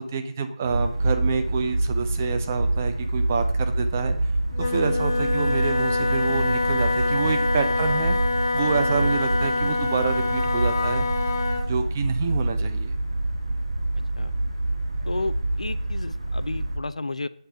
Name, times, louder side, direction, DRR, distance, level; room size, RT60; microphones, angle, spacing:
voice 1, 0.0-4.2 4.6-8.2 8.5-11.1 11.7-13.0, right 5 dB, 20° right, 7 dB, 0.4 m, -27 dB
sound 1, 0.6-16.8, right 2 dB, 55° right, 1.2 m, -27 dB
Wind instrument woodwind instrument, 4.5-11.7, left 3 dB, 30° left, 0.7 m, -26 dB
voice 2, 15.1-17.3, left 2 dB, 75° left, 13 dB, 0.3 m, -32 dB
6.6 x 2.6 x 5.5 m, 0.73 s
figure-of-eight pair, 160°, 4 cm